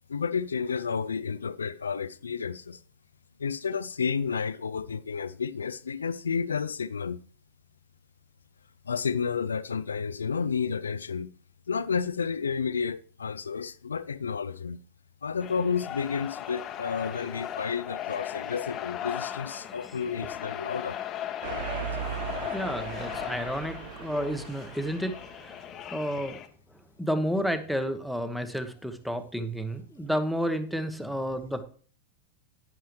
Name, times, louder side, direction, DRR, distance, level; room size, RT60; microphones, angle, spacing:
voice 1, 0.1-2.8 3.4-7.2 8.9-11.3 11.7-14.8 15.2-21.0 25.7-25.8, left 6 dB, 70° left, 0.3 m, -31 dB
sound 1, 15.4-26.5, left 11 dB, 30° left, 0.9 m, -37 dB
sound 2, 21.4-25.6, right 12 dB, 55° right, 0.6 m, -38 dB
voice 2, 22.0-26.4 27.0-31.6, equal, ahead, 1.0 m, -31 dB
10.5 x 10.0 x 3.2 m
figure-of-eight pair, 90°, 0 cm